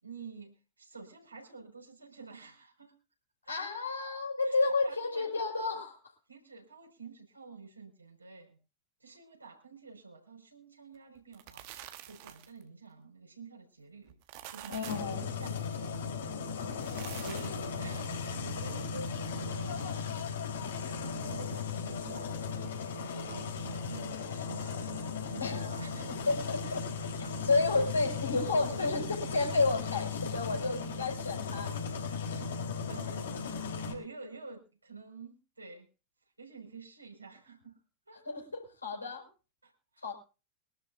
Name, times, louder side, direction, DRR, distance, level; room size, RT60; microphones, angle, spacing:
voice 1, 0.0-2.9 3.4-3.6 4.4-5.3 6.3-8.6 9.0-11.7 12.1-14.2 14.5-16.0 16.4-20.1 20.6-26.7 27.0-28.3 30.0-30.1 32.6-33.5 33.8-35.9 36.4-37.8 38.1-38.2 39.6-40.1, right 3 dB, 80° right, 1 dB, 5.5 m, -49 dB
voice 2, 3.5-6.0 14.7-15.2 25.4-25.7 26.3-26.9 27.5-32.1 32.4-32.5 38.2-39.3 40.0-40.1, left 3 dB, 80° left, 1 dB, 5.8 m, -31 dB
sound 1, 11.2-12.6 14.1-15.2 16.7-17.7, right 13 dB, 45° right, 1.3 m, -47 dB
sound 2, 14.8-33.9, left 5 dB, 65° left, 4.2 m, -37 dB
25.0 x 12.5 x 2.7 m, 0.33 s
figure-of-eight pair, 90°, 0 cm